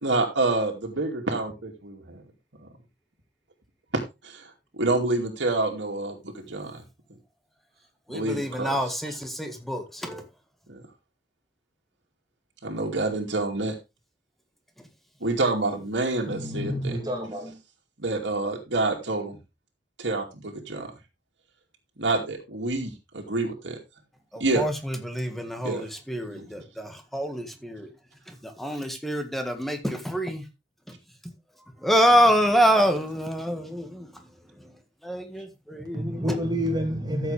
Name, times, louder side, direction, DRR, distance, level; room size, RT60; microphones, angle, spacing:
voice 1, 0.0-2.2 2.6-2.7 3.9-6.8 8.1-8.8 10.7-10.8 12.6-13.7 15.2-17.0 18.0-19.4 20.0-20.9 22.0-23.8 24.4-24.6 25.6-25.8 26.3-26.5, right 2 dB, 75° right, 2.5 m, -28 dB
voice 2, 8.1-10.2 24.3-27.9 28.3-30.4 30.9-31.0 31.8-34.1 34.6-34.7 35.0-36.4, equal, ahead, 1.8 m, -26 dB
voice 3, 16.3-17.6 35.9-37.3, equal, 20° right, 2.5 m, -29 dB
14.0 x 7.2 x 3.4 m
head